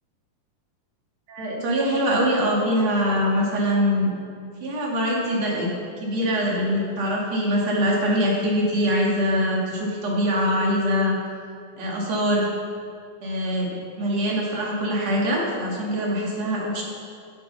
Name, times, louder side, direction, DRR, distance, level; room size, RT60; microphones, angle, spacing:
voice 1, 1.3-4.1 4.6-5.7 6.0-11.2 11.8-12.5 13.2-16.8, equal, 55° right, -4 dB, 3.7 m, -23 dB
16.0 x 8.4 x 5.7 m, 2.3 s
omnidirectional pair, 3.5 m